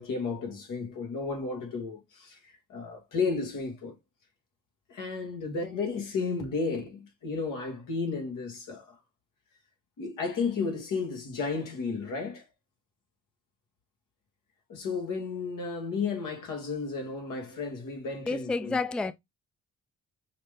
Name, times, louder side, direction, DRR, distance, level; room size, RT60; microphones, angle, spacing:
voice 1, 0.0-4.0 4.9-8.9 10.0-12.4 14.7-18.8, left 4 dB, 85° left, 1.4 m, -33 dB
voice 2, 18.3-19.1, left 3 dB, 5° left, 0.4 m, -29 dB
5.8 x 2.1 x 3.2 m
supercardioid pair, 60°, 31 cm